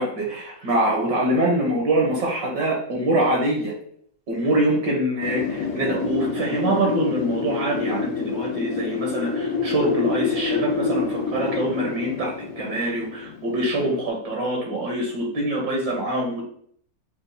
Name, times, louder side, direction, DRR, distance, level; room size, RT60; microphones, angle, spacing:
voice 1, 0.0-3.7 4.3-16.4, right 1 dB, 70° right, -1 dB, 1.4 m, -24 dB
Wind, 5.2-13.9, left 4 dB, 85° left, 1.4 m, -27 dB
6.5 x 2.3 x 2.6 m, 0.63 s
omnidirectional pair, 2.1 m